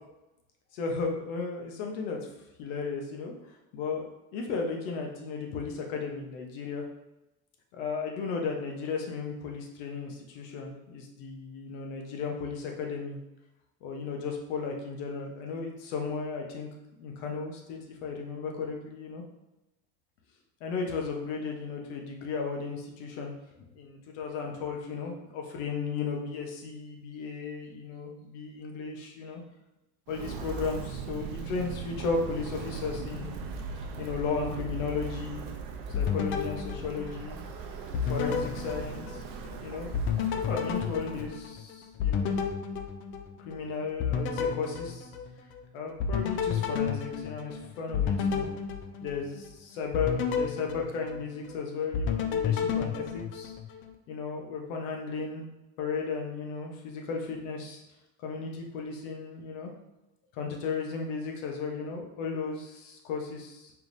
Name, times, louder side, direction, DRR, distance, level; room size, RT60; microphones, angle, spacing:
voice 1, 0.7-2.2 2.6-3.3 3.7-4.1 4.3-6.8 7.7-13.2 13.8-16.7 17.0-19.2 20.6-23.3 23.8-29.4 30.1-33.3 33.8-35.5 35.9-37.4 38.1-39.2 39.5-40.0 40.3-42.4 43.4-45.1 45.7-48.5 49.0-53.5 54.1-55.5 55.8-57.8 58.2-59.7 60.3-63.7, left 5 dB, 80° left, 2 dB, 1.0 m, -35 dB
Walk footsteps, 30.1-41.3, right 4 dB, 65° right, 0.8 m, -39 dB
sound 1, 35.9-37.5 37.9-39.6 39.9-43.6 44.0-45.6 46.0-49.5 49.9-51.6 51.9-53.9, left 6 dB, 35° left, 0.4 m, -31 dB
4.5 x 3.6 x 2.6 m, 0.94 s
supercardioid pair, 135°, 38 cm